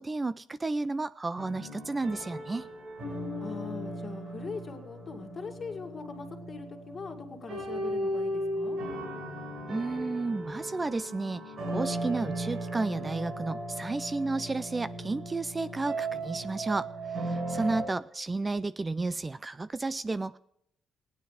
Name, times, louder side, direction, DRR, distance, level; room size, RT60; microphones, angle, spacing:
voice 1, 0.0-2.7 9.7-20.4, right 3 dB, 25° right, 15 dB, 0.4 m, -32 dB
sound 1, 1.4-17.8, right 1 dB, 60° right, 4.9 m, -36 dB
voice 2, 3.4-8.8 17.5-17.8, left 4 dB, 40° left, 3 dB, 2.2 m, -41 dB
17.0 x 9.4 x 5.0 m, 0.78 s
cardioid pair, 90°, 0 cm